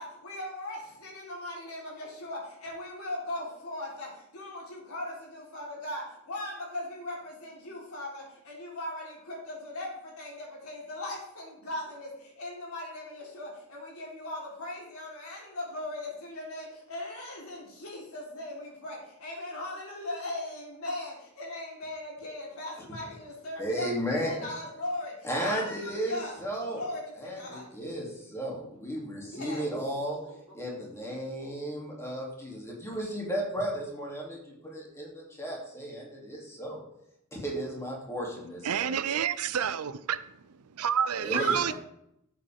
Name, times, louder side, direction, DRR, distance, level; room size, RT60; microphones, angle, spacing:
voice 1, 0.0-26.4 26.7-27.7 29.2-29.7 30.1-30.3 30.7-30.8 41.2-41.7, left 1 dB, 75° left, 3.7 m, -39 dB
voice 2, 23.6-24.5 25.2-26.8 27.2-30.2 30.5-36.8 37.3-39.0 41.2-41.7, right 1 dB, 15° left, 2.7 m, -34 dB
voice 3, 38.6-40.2 40.8-41.7, right 8 dB, 80° right, 0.6 m, -28 dB
12.5 x 7.8 x 3.6 m
head